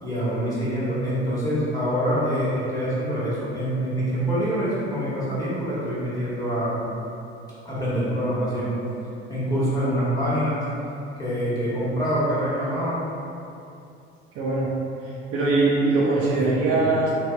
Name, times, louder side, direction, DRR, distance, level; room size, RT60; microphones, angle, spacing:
voice 1, 0.0-6.8 7.6-8.7 9.3-10.6 11.2-13.0 16.4-16.8, equal, 10° left, -10 dB, 1.2 m, -25 dB
voice 2, 14.4-14.7 15.0-17.1, right 3 dB, 45° right, -6 dB, 0.5 m, -22 dB
3.3 x 2.3 x 2.2 m, 2.7 s
hypercardioid pair, 65°, 33 cm